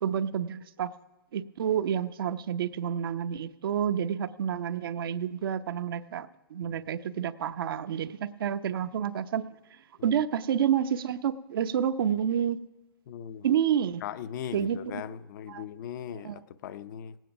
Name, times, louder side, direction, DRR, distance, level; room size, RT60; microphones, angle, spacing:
voice 1, 0.0-0.9 1.3-9.5 10.0-12.6 13.4-14.0 14.5-15.0 15.5-15.6 16.1-16.4, right 9 dB, 75° right, 10 dB, 0.8 m, -29 dB
voice 2, 13.1-13.5 14.0-17.2, left 9 dB, 55° left, 14 dB, 0.7 m, -39 dB
18.0 x 9.2 x 5.8 m, 1.1 s
hypercardioid pair, 140°, 12 cm